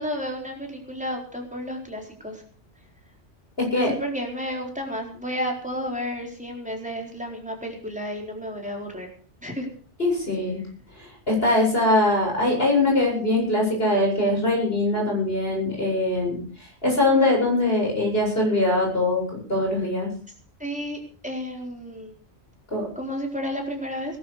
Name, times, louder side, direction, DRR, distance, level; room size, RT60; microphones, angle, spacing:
voice 1, 0.0-2.4 3.7-9.1 9.4-9.7 20.6-22.1 23.0-24.2, equal, 5° right, 0 dB, 4.3 m, -32 dB
voice 2, 3.6-3.9 10.0-10.6 11.3-16.4 16.8-19.2 19.5-20.1 22.7-22.8, left 2 dB, 55° left, 0 dB, 8.3 m, -22 dB
19.5 x 12.0 x 5.1 m, 0.43 s
omnidirectional pair, 1.2 m